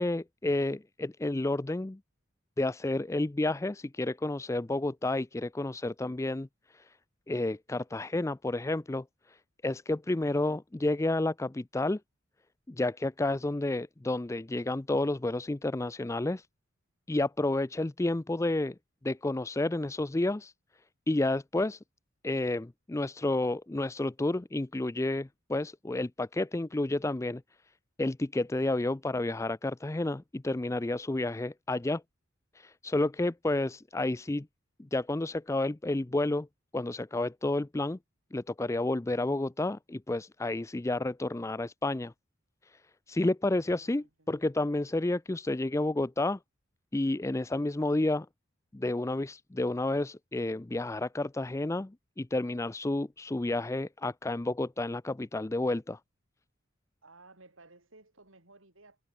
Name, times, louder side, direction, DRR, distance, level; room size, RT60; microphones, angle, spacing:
voice 1, 0.0-2.0 2.6-7.0 7.3-9.4 9.6-12.0 12.7-16.5 17.1-18.8 19.0-20.5 21.1-21.8 22.2-27.4 28.0-32.0 32.5-34.5 34.9-36.5 36.7-38.0 38.3-42.1 42.7-42.8 43.1-46.4 46.9-48.3 48.7-56.0, left 2 dB, 15° left, 0.4 m, -30 dB
voice 2, 43.8-44.3 57.0-59.0, right 3 dB, 70° right, 4.8 m, -57 dB
head